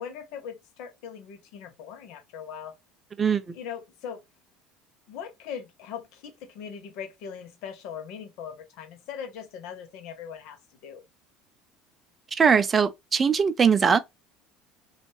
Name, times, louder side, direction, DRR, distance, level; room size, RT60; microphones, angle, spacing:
voice 1, 0.0-2.7 3.5-4.2 5.1-11.0, left 7 dB, 65° left, 0.7 m, -40 dB
voice 2, 12.3-14.0, right 6 dB, 30° right, 0.3 m, -21 dB
2.5 x 2.3 x 3.1 m
hypercardioid pair, 70°, 0 cm